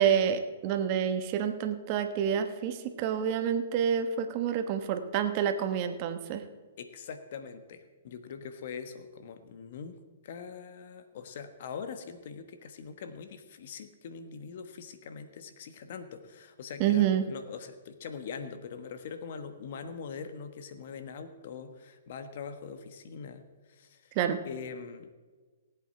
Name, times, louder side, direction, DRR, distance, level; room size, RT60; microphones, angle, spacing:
voice 1, 0.0-6.4 16.8-17.2 24.1-24.4, right 8 dB, 40° right, 8 dB, 1.2 m, -28 dB
voice 2, 6.8-9.9 10.2-24.1 24.4-25.1, left 6 dB, 60° left, 9 dB, 1.3 m, -43 dB
18.0 x 8.3 x 4.4 m, 1.4 s
hypercardioid pair, 135°, 0 cm